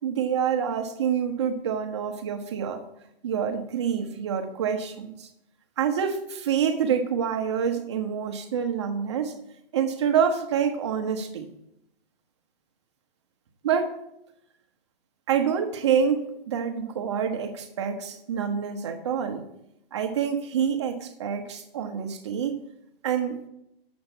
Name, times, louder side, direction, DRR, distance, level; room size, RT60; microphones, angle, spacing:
voice 1, 0.0-2.8 3.2-5.3 5.8-9.3 9.7-11.5 13.6-13.9 15.3-19.4 19.9-22.6 23.0-23.4, right 7 dB, 30° right, 5 dB, 1.0 m, -27 dB
7.3 x 7.0 x 8.2 m, 0.82 s
hypercardioid pair, 175°, 30 cm